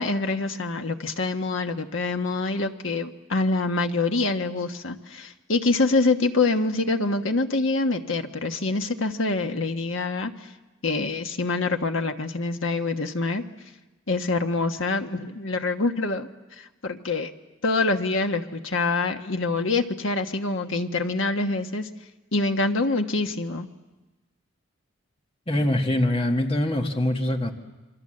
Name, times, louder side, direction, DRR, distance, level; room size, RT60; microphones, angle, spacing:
voice 1, 0.0-10.3 10.8-13.4 14.1-16.3 16.6-17.3 17.6-21.9 22.3-23.7, left 3 dB, 70° left, 6 dB, 1.4 m, -25 dB
voice 2, 25.5-27.5, left 1 dB, 25° left, 4 dB, 1.6 m, -23 dB
27.0 x 24.0 x 7.7 m, 1.1 s
head